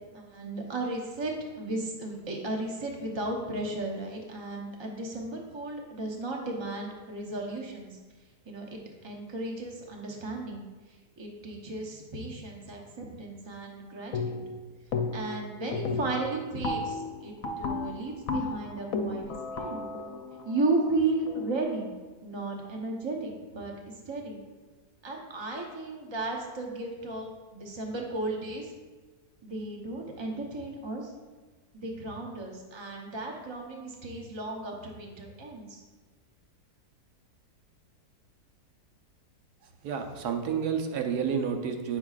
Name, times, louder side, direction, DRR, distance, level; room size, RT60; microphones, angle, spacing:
voice 1, 0.1-8.0 8.5-10.6 11.2-14.4 15.1-19.8 20.4-21.9 22.2-23.7 24.1-24.4 25.0-28.7 29.4-31.1 31.7-35.8, right 2 dB, 25° right, 0 dB, 0.6 m, -34 dB
sound 1, 14.1-14.6 14.9-15.4 15.7-21.5, left 3 dB, 65° left, 1.0 m, -34 dB
voice 2, 39.8-42.0, right 7 dB, 75° right, 4 dB, 1.2 m, -30 dB
9.0 x 6.0 x 2.4 m, 1.3 s
omnidirectional pair, 1.8 m